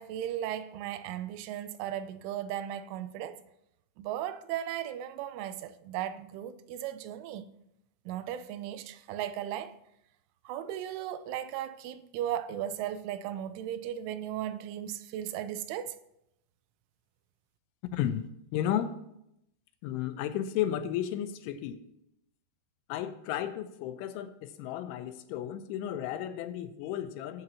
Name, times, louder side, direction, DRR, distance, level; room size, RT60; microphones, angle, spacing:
voice 1, 0.0-3.4 4.0-7.5 8.1-9.8 10.5-16.0, right 11 dB, 90° right, 3.1 m, -36 dB
voice 2, 17.9-18.3 18.5-18.9 19.8-21.8 22.9-27.4, left 11 dB, 90° left, 3.2 m, -33 dB
17.5 x 8.8 x 2.8 m
omnidirectional pair, 5.4 m